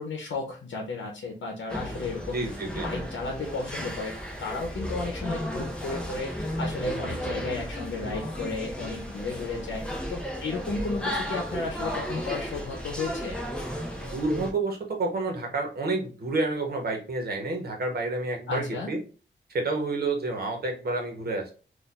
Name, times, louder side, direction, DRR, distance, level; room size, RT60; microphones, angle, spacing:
voice 1, 0.0-9.8 10.1-13.4 18.5-18.9, left 3 dB, 85° left, 1 dB, 0.8 m, -34 dB
sound 1, 1.7-14.5, equal, 5° left, 0.7 m, -34 dB
voice 2, 2.3-2.9 14.0-19.0 19.5-21.5, right 2 dB, 55° right, 2 dB, 1.1 m, -29 dB
4.3 x 2.5 x 2.5 m, 0.36 s
wide cardioid pair, 160°, 19 cm